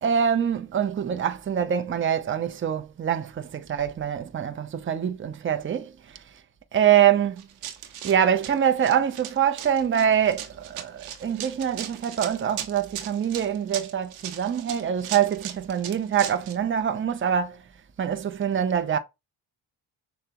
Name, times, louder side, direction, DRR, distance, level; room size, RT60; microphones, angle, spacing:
voice 1, 0.0-5.9 6.7-7.4 8.0-17.6 18.0-19.0, right 9 dB, 25° right, 0.6 m, -24 dB
Run, 7.4-16.6, right 10 dB, 90° right, 0.8 m, -37 dB
6.5 x 2.2 x 2.9 m
cardioid pair, 80°, 49 cm